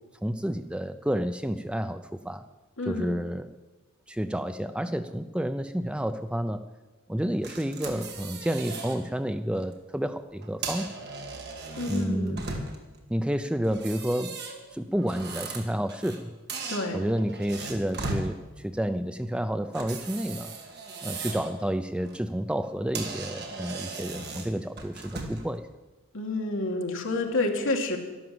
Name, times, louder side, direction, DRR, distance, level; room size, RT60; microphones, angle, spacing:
voice 1, 0.2-2.4 2.9-3.5 4.1-6.6 7.1-10.9 11.9-12.5 13.1-14.4 14.7-16.4 16.9-20.5 21.0-25.6, equal, 5° right, 10 dB, 0.4 m, -30 dB
voice 2, 2.8-3.1 11.8-12.5 16.7-17.0 26.1-28.0, left 2 dB, 60° left, 3 dB, 2.1 m, -29 dB
sound 1, 7.4-9.0 9.4-9.6 10.4-13.0 13.6-16.2 16.5-18.3 19.7-21.5 21.9-22.2 22.6-22.7 22.9-25.5, right 3 dB, 50° right, 2.1 m, -37 dB
12.5 x 11.5 x 7.7 m, 1.2 s
head